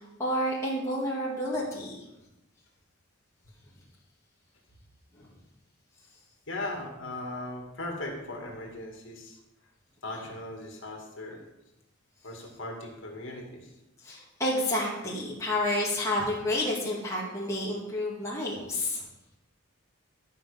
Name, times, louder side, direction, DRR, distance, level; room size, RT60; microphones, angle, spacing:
voice 1, 0.2-2.0 14.0-19.0, left 1 dB, 15° left, -5 dB, 2.0 m, -29 dB
voice 2, 6.5-9.4 10.0-11.4 12.2-13.8, left 2 dB, 60° left, 1 dB, 2.2 m, -38 dB
12.5 x 5.7 x 5.1 m, 0.94 s
head